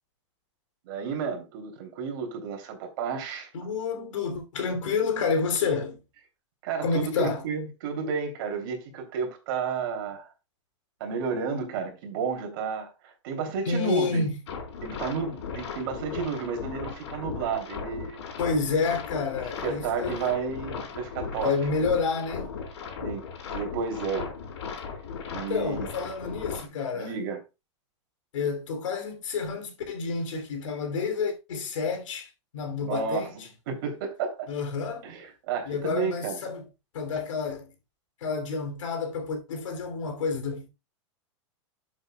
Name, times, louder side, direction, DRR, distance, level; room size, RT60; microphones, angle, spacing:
voice 1, 0.9-3.5 6.6-10.3 11.0-14.3 14.8-18.2 19.6-21.5 23.0-23.2 23.5-24.3 25.3-25.9 26.9-27.4 32.8-33.3 33.7-34.5 35.0-36.4, right 5 dB, 45° right, 3.1 m, -32 dB
voice 2, 3.5-6.0 6.8-7.5 13.6-14.4 18.4-20.2 21.3-22.5 25.3-27.2 28.3-33.5 34.5-35.1 35.6-36.7 36.9-37.7 38.2-40.7, left 5 dB, 80° left, 3.0 m, -29 dB
sound 1, 14.5-26.7, left 6 dB, 65° left, 4.1 m, -37 dB
12.0 x 7.2 x 2.3 m
supercardioid pair, 175°, 16 cm